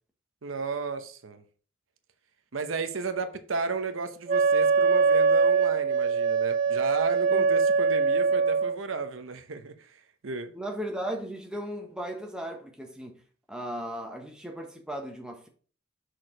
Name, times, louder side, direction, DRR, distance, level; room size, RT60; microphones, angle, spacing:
voice 1, 0.4-1.4 2.5-10.5, right 4 dB, 90° right, 0.8 m, -34 dB
Wind instrument woodwind instrument, 4.3-8.8, right 5 dB, 40° right, 0.4 m, -23 dB
voice 2, 10.5-13.2 13.5-15.5, right 1 dB, 5° right, 1.1 m, -36 dB
6.2 x 4.7 x 4.9 m
head